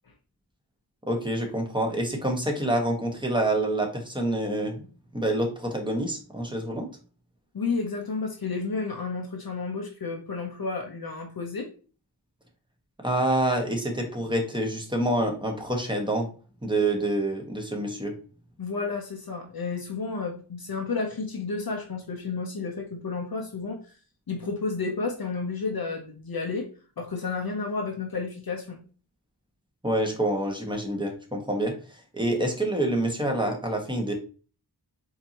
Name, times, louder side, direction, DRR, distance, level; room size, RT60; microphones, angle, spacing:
voice 1, 1.1-4.8 5.1-6.9 13.0-16.3 16.6-18.1 29.8-34.1, right 1 dB, 10° right, 2 dB, 1.2 m, -27 dB
voice 2, 7.5-11.7 18.6-23.8 24.3-26.7 27.0-28.8, left 4 dB, 60° left, 2 dB, 0.8 m, -31 dB
4.4 x 2.8 x 2.9 m, 0.38 s
cardioid pair, 45°, 41 cm